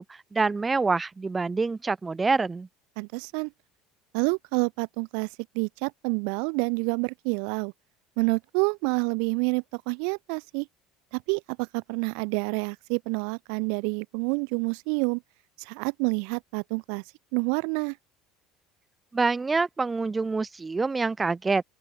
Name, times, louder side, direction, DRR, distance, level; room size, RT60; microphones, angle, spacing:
voice 1, 0.0-2.7 19.1-21.6, right 4 dB, 20° right, 2.2 m, -26 dB
voice 2, 3.0-3.5 4.1-5.3 5.5-7.7 8.2-10.7 11.1-15.2 15.6-17.0 17.3-18.0, right 40 dB or more, 70° right, 1.0 m, -28 dB
open air
hypercardioid pair, 75°, 0 cm